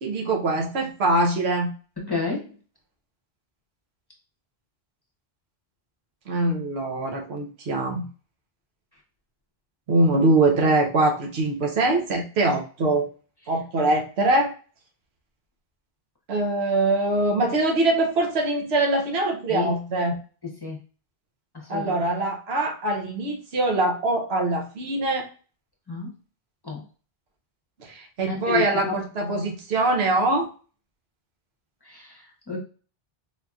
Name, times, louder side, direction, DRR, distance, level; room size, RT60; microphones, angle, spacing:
voice 1, 0.0-1.7 6.3-8.0 9.9-13.1 13.5-14.5 16.3-20.2 21.7-25.3 27.8-30.5, right 2 dB, 85° right, 1 dB, 1.1 m, -23 dB
voice 2, 2.0-2.5 19.5-19.7 20.4-20.8 21.5-22.1 25.9-26.1 26.6-26.8 28.3-29.0 31.8-32.6, left 5 dB, 25° left, -2 dB, 0.8 m, -30 dB
4.2 x 2.7 x 2.3 m, 0.37 s
omnidirectional pair, 1.1 m